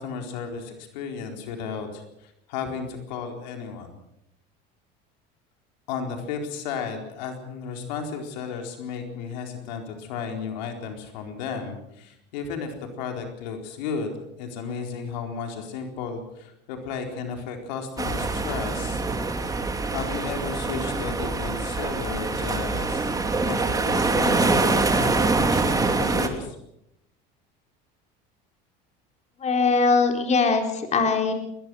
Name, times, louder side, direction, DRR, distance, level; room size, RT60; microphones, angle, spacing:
voice 1, 0.0-4.0 5.9-19.0 19.9-23.1 23.4-26.6, left 5 dB, 90° left, 4 dB, 4.3 m, -34 dB
sound 1, 18.0-26.3, right 3 dB, 15° right, 2.9 m, -24 dB
voice 2, 29.4-31.3, left 4 dB, 30° left, 4 dB, 4.1 m, -21 dB
21.0 x 21.0 x 6.4 m, 0.79 s
supercardioid pair, 110°, 21 cm